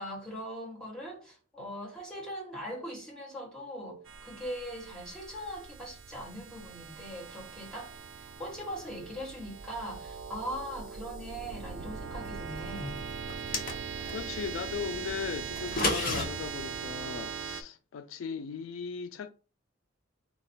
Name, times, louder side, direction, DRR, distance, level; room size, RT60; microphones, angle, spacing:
voice 1, 0.0-7.9 8.2-13.0, equal, 5° left, 1.2 m, -40 dB
sound 1, 4.1-17.6, right 6 dB, 65° right, 0.4 m, -41 dB
sound 2, 13.3-14.2 15.6-16.3, left 2 dB, 45° left, 0.8 m, -30 dB
voice 2, 14.1-19.3, left 6 dB, 80° left, 0.3 m, -37 dB
4.0 x 2.1 x 4.3 m
head